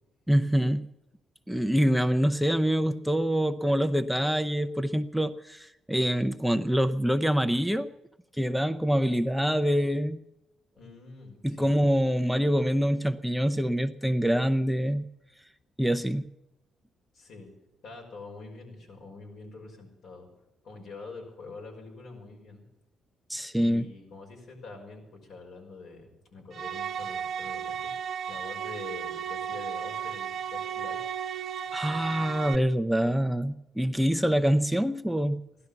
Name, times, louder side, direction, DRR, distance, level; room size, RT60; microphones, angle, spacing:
voice 1, 0.3-0.9 1.5-7.9 8.3-10.2 11.4-15.1 15.8-16.3 23.3-23.8 31.7-35.4, equal, ahead, 8 dB, 0.6 m, -25 dB
voice 2, 10.8-11.8 17.1-17.5 17.8-20.3 20.6-22.6 23.6-31.0, left 3 dB, 70° left, 1 dB, 5.8 m, -45 dB
sound 1, 26.5-32.6, right 8 dB, 60° right, 0.9 m, -34 dB
16.5 x 12.0 x 7.0 m, 0.93 s
cardioid pair, 90°, 0 cm